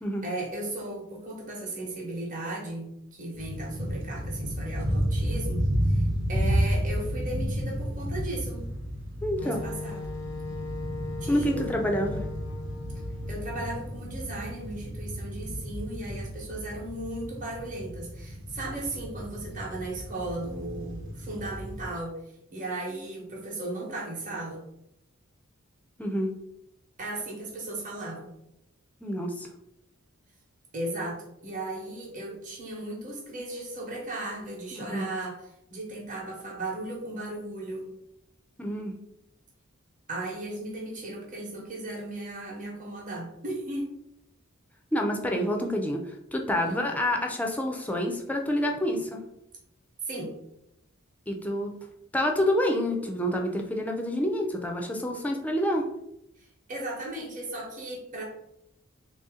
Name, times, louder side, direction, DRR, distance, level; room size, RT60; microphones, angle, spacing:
voice 1, 0.2-8.7 9.4-10.0 11.2-11.8 13.3-22.2 22.5-24.7 27.0-28.3 30.7-35.4 35.7-37.9 40.1-43.9 46.7-46.8 50.0-50.3 56.4-58.2, right 2 dB, 40° right, -3 dB, 1.0 m, -36 dB
sound 1, 3.4-21.9, equal, 60° right, 0.8 m, -32 dB
voice 2, 9.2-9.6 11.3-12.2 26.0-26.3 29.0-29.5 34.7-35.0 38.6-38.9 44.9-49.2 51.3-51.7 52.1-55.9, equal, 5° left, 2 dB, 0.4 m, -28 dB
Wind instrument woodwind instrument, 9.4-14.0, left 3 dB, 85° left, 0.5 m, -39 dB
3.3 x 2.7 x 3.6 m, 0.80 s
head